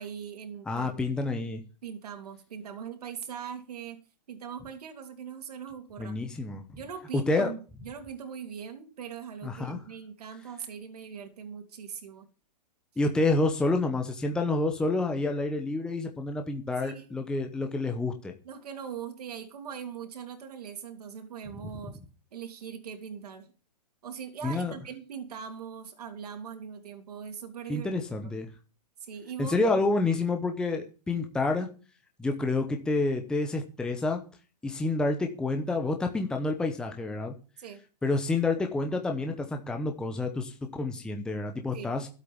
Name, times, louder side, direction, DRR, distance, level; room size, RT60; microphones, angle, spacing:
voice 1, 0.0-0.9 1.8-4.0 4.3-6.1 6.8-12.3 16.8-17.0 18.4-22.0 22.3-23.5 24.0-27.9 29.0-29.7 37.6-37.8 41.7-41.9, right 7 dB, 65° right, 5 dB, 3.1 m, -41 dB
voice 2, 0.7-1.6 6.0-6.6 7.3-7.5 9.4-9.8 13.0-18.3 24.4-24.7 27.7-28.5 29.4-31.7 32.2-34.2 34.6-37.3 38.0-42.1, left 2 dB, 5° left, 4 dB, 0.9 m, -28 dB
13.0 x 8.2 x 7.0 m, 0.36 s
hypercardioid pair, 155°, 21 cm